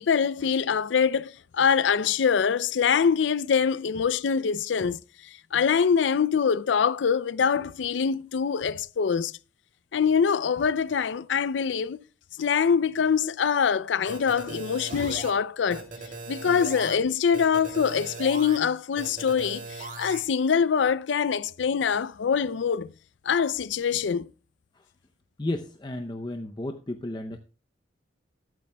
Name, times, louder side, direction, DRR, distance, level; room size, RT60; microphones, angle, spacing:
voice 1, 0.0-5.0 5.5-9.3 9.9-12.0 12.4-15.9 16.3-22.9 23.2-24.3, left 6 dB, 80° left, 0.4 m, -24 dB
sound 1, 14.1-15.3 15.7-16.9 17.3-18.6 19.0-20.2, right 3 dB, 45° right, 2.8 m, -38 dB
voice 2, 25.4-27.4, left 1 dB, 25° left, 0.6 m, -33 dB
14.5 x 12.5 x 2.3 m
head